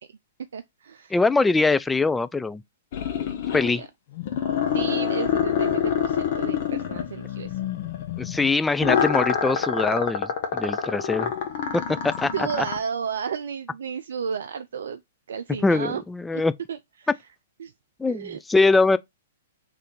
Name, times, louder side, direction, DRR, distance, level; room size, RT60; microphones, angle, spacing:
voice 1, 0.5-1.2 3.7-3.9 4.7-7.6 12.3-15.0 15.3-16.0 16.3-16.4 16.7-17.1 17.6-17.7 18.1-18.4, right 6 dB, 70° right, 0.4 m, -32 dB
voice 2, 1.1-2.6 3.5-3.8 8.2-11.3 11.7-12.3 15.6-16.5 18.0-19.0, left 3 dB, 10° left, 0.3 m, -22 dB
sound 1, 2.9-3.9 4.2-8.5 8.8-12.8, left 8 dB, 50° left, 1.2 m, -26 dB
3.7 x 3.3 x 4.1 m
figure-of-eight pair, 115°, 0 cm